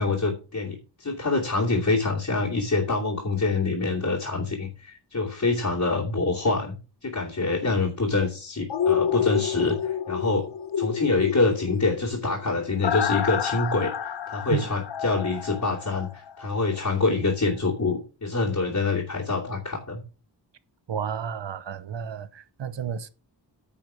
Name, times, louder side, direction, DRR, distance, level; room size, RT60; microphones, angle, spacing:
voice 1, 0.0-6.8 7.0-10.5 10.8-20.0, left 3 dB, 45° left, 2.7 m, -26 dB
sound 1, 8.7-16.6 16.9-17.0, left 8 dB, 70° left, 0.9 m, -29 dB
voice 2, 20.9-23.1, right 8 dB, 75° right, 0.9 m, -31 dB
10.0 x 5.2 x 6.1 m
wide cardioid pair, 95°, 44 cm